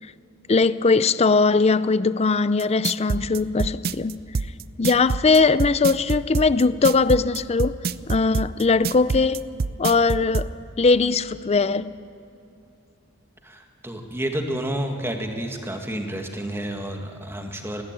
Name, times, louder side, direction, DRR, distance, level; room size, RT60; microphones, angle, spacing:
voice 1, 0.5-4.2 4.8-7.8 8.1-9.4 9.8-10.5 10.8-11.9, left 4 dB, 30° left, 16 dB, 0.5 m, -20 dB
sound 1, 2.6-10.5, right 4 dB, 50° right, 0.5 m, -25 dB
voice 2, 13.4-17.8, right 1 dB, 10° right, 3 dB, 1.9 m, -30 dB
19.5 x 15.0 x 9.0 m, 2.8 s
head